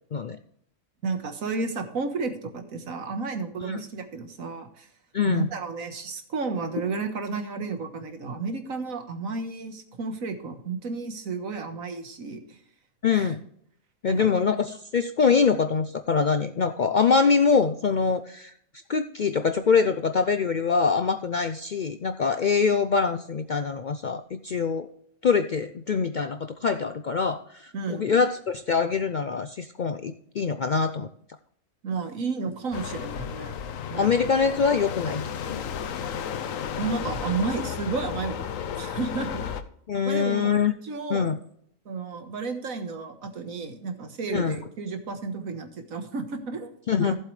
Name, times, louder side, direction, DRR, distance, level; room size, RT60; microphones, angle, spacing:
voice 1, 1.0-4.9 5.3-12.6 13.1-13.3 14.1-14.3 27.7-28.2 31.8-33.5 33.9-34.1 36.8-38.5 38.8-39.5 40.1-40.5 40.8-41.3 41.9-46.7 47.0-47.2, right 4 dB, 85° right, 7 dB, 1.8 m, -32 dB
voice 2, 5.1-5.5 13.0-13.4 14.0-18.5 18.9-24.9 25.2-31.1 33.9-35.2 35.5-35.6 39.9-40.7 41.1-41.4 44.3-44.6 46.9-47.1, left 5 dB, 60° left, 9 dB, 0.5 m, -24 dB
sound 1, 32.7-39.6, left 8 dB, 80° left, 1.1 m, -33 dB
15.0 x 7.6 x 3.3 m, 0.68 s
omnidirectional pair, 1.4 m